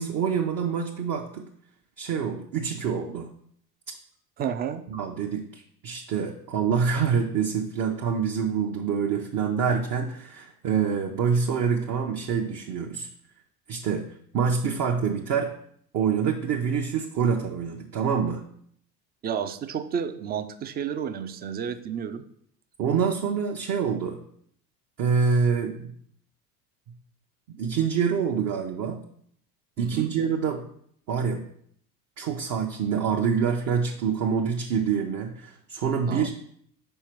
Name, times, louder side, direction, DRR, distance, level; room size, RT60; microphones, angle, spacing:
voice 1, 0.0-1.5 2.0-3.3 4.9-13.1 13.7-14.1 14.3-15.5 15.9-18.4 22.8-24.2 25.0-25.9 27.6-29.0 29.8-30.6 31.1-31.4 32.2-36.3, right 6 dB, 40° right, 1 dB, 0.8 m, -26 dB
voice 2, 4.4-4.8 19.2-22.2 29.8-30.1 36.1-36.3, right 8 dB, 20° right, 10 dB, 0.4 m, -31 dB
5.6 x 4.3 x 4.5 m, 0.65 s
hypercardioid pair, 75°, 49 cm